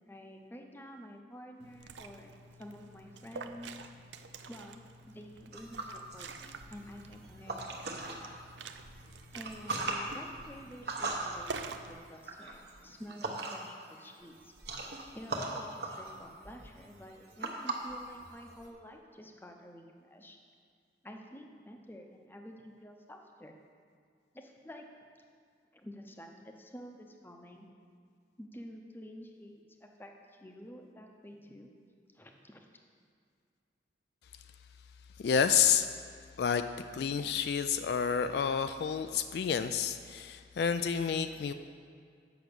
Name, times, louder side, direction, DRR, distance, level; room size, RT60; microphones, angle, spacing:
voice 1, 0.1-2.3 2.6-3.9 4.5-4.8 5.1-8.4 9.3-14.5 15.1-20.4 21.0-23.5 24.3-24.8 25.7-27.7 28.4-31.7 32.1-32.7, equal, 10° left, 3 dB, 0.7 m, -50 dB
Liquid, 1.6-11.9, right 4 dB, 80° right, 0.5 m, -48 dB
sound 1, 5.5-8.3 8.8-13.8 14.1-18.7, right 2 dB, 65° right, 1.1 m, -39 dB
voice 2, 35.2-35.9 36.4-36.6 36.9-41.5, left 7 dB, 65° left, 9 dB, 0.3 m, -29 dB
7.9 x 6.0 x 6.8 m, 2.2 s
head